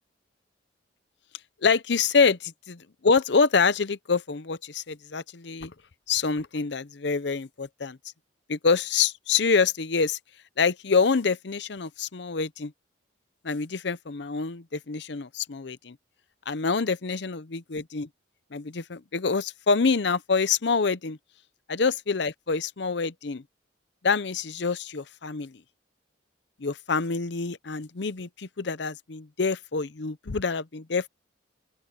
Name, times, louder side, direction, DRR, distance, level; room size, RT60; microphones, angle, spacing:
voice 1, 1.6-5.7 6.1-8.0 8.5-10.2 10.6-12.7 13.4-16.0 16.5-18.1 18.5-21.2 21.7-23.4 24.0-25.6 26.6-31.1, left 5 dB, 65° left, 0.7 m, -26 dB
open air
head